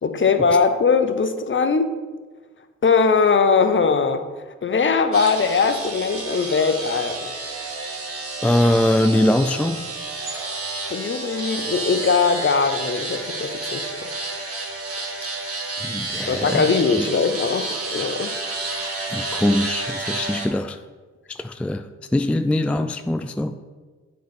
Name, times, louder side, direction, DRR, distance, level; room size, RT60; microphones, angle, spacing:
voice 1, 0.0-1.9 2.8-4.2 4.6-7.3 10.9-14.1 16.3-18.3, left 5 dB, 40° left, 9 dB, 0.8 m, -20 dB
sound 1, 5.1-20.5, right 3 dB, 50° right, 1.8 m, -30 dB
voice 2, 8.4-9.9 15.8-16.7 17.0-17.1 19.1-20.8 21.3-21.9 22.1-23.6, left 1 dB, 5° left, 8 dB, 0.4 m, -22 dB
7.9 x 4.0 x 5.1 m, 1.4 s
supercardioid pair, 50°, 29 cm